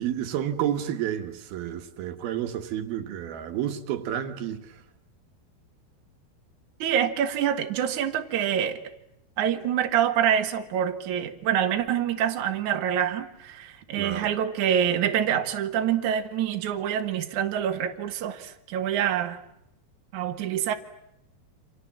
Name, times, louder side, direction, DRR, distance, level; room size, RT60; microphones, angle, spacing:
voice 1, 0.0-4.8 13.9-14.3, right 10 dB, 75° right, 3.4 m, -30 dB
voice 2, 6.8-8.8 9.4-19.4 20.1-20.7, right 9 dB, 60° right, 2.7 m, -26 dB
29.0 x 27.0 x 7.4 m
omnidirectional pair, 4.4 m